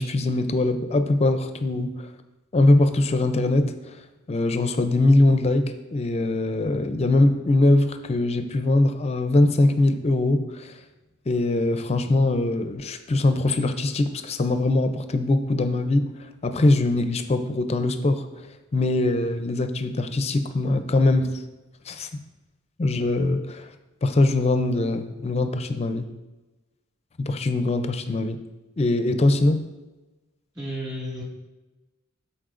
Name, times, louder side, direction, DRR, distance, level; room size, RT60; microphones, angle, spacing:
voice 1, 0.0-2.1 2.5-3.7 4.3-10.7 11.3-16.1 16.4-18.2 18.7-21.4 21.9-22.1 22.8-23.6 24.0-26.1 27.2-28.4 28.8-29.6, left 2 dB, 30° left, 9 dB, 0.4 m, -22 dB
voice 2, 30.6-31.2, equal, 20° right, -4 dB, 1.8 m, -32 dB
12.5 x 4.2 x 2.5 m, 1.1 s
head